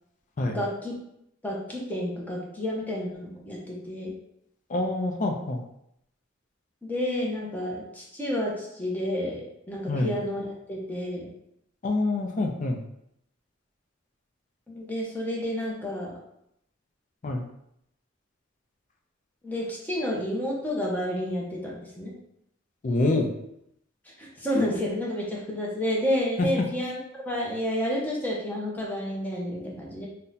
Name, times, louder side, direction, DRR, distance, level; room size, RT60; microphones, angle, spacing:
voice 1, 0.5-0.9 1.4-4.1 6.8-11.3 14.7-16.1 19.4-22.1 24.2-27.0 27.2-30.1, left 1 dB, 10° left, -3 dB, 0.7 m, -30 dB
voice 2, 4.7-5.6 9.9-10.1 11.8-12.8 17.2-17.4 22.8-23.3 26.4-26.5, left 2 dB, 40° left, 3 dB, 0.4 m, -26 dB
2.8 x 2.1 x 3.8 m, 0.77 s
head